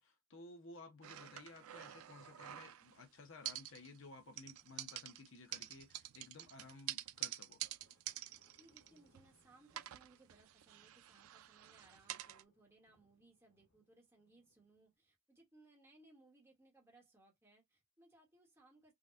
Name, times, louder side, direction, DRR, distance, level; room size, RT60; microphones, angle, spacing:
voice 1, 0.0-7.6, left 3 dB, 55° left, 0.8 m, -56 dB
sound 1, 1.0-3.0 3.4-4.1 4.4-9.4 9.7-12.4, right 13 dB, 75° right, 0.4 m, -48 dB
sound 2, 7.8-14.9, left 1 dB, 85° left, 1.3 m, -77 dB
voice 2, 8.5-18.9, right 2 dB, 10° right, 1.1 m, -67 dB
3.7 x 2.3 x 2.5 m
head